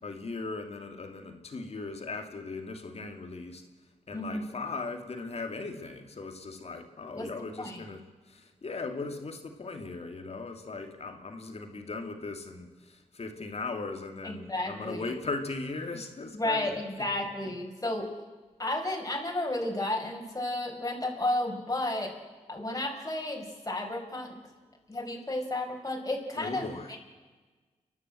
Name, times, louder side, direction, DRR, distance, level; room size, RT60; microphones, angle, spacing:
voice 1, 0.0-3.6 4.1-8.0 8.3-12.7 13.1-16.7 26.4-26.9, left 3 dB, 60° left, 5 dB, 2.7 m, -38 dB
voice 2, 4.1-4.4 7.2-7.3 7.6-7.8 14.2-15.1 16.3-18.1 18.6-22.1 22.5-24.4 24.9-27.0, left 1 dB, 30° left, 0 dB, 5.0 m, -32 dB
30.0 x 11.5 x 7.8 m, 1.3 s
cardioid pair, 55°, 12 cm